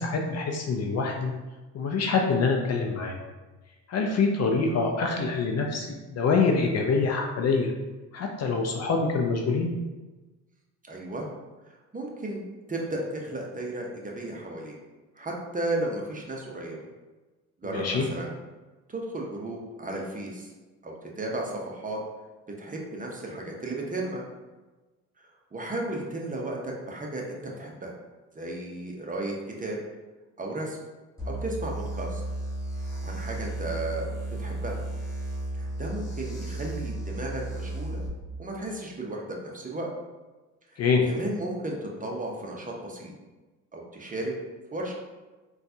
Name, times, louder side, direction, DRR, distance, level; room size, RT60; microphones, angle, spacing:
voice 1, 0.0-1.3 1.7-3.2 3.9-7.7 8.1-9.7 17.6-18.1 40.8-41.1, left 4 dB, 40° left, 2 dB, 0.5 m, -25 dB
voice 2, 10.9-11.3 11.7-14.7 15.2-16.8 17.6-18.3 18.9-20.5 20.8-22.0 22.6-24.2 25.2-27.9 28.3-29.8 30.4-30.8 31.2-32.2 32.8-34.1 34.4-34.9 35.5-38.0 38.4-39.9 40.7-43.1 43.7-44.3 44.7-44.9, right 2 dB, 20° right, -1 dB, 0.7 m, -34 dB
sound 1, 31.2-38.1, right 1 dB, 10° left, 1.5 m, -34 dB
3.8 x 2.4 x 2.7 m, 1.2 s
hypercardioid pair, 65°, 39 cm